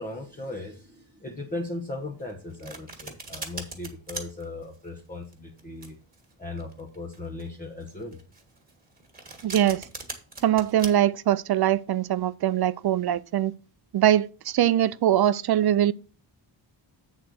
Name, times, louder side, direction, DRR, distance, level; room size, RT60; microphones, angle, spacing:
voice 1, 0.0-6.0 6.4-8.2, left 2 dB, 20° left, 1.1 m, -37 dB
Domestic sounds home sounds, 2.2-10.9, right 3 dB, 20° right, 1.9 m, -40 dB
voice 2, 9.4-9.8 10.4-13.5 13.9-15.9, right 11 dB, 55° right, 0.5 m, -22 dB
8.6 x 4.0 x 6.2 m
wide cardioid pair, 170°, 46 cm